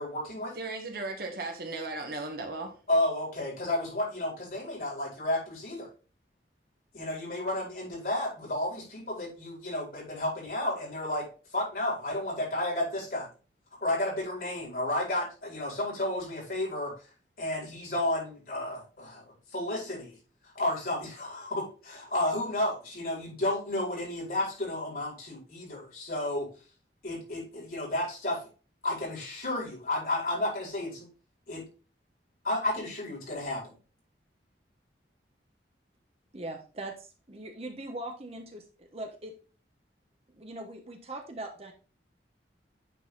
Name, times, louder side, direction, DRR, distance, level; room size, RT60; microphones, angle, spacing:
voice 1, 0.0-0.6 2.9-5.9 6.9-11.3 11.5-13.3 13.8-16.9 17.4-20.1 20.5-26.5 27.0-28.4 28.8-31.1 31.5-31.6 32.4-33.7, left 1 dB, 50° left, -3 dB, 4.4 m, -32 dB
voice 2, 0.5-2.8, right 2 dB, 55° right, 3 dB, 1.5 m, -36 dB
voice 3, 36.3-39.3 40.3-41.7, right 2 dB, 35° right, 4 dB, 1.0 m, -41 dB
9.2 x 4.0 x 3.9 m, 0.36 s
head